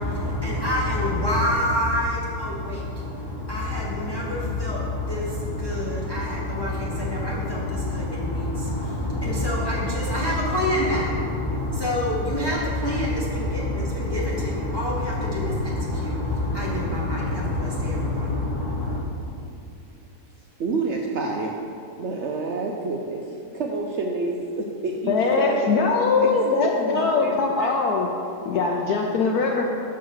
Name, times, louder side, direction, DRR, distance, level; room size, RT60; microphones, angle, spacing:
voice 1, 0.0-19.0, left 1 dB, 30° left, -6 dB, 0.5 m, -26 dB
voice 2, 20.6-21.5 22.0-25.9 26.3-27.3 27.6-27.7 28.6-28.7, right 3 dB, 75° right, 0 dB, 0.6 m, -28 dB
voice 3, 25.1-28.1 28.4-29.7, left 4 dB, 75° left, 0 dB, 1.0 m, -22 dB
6.2 x 4.7 x 6.4 m, 2.6 s
omnidirectional pair, 1.8 m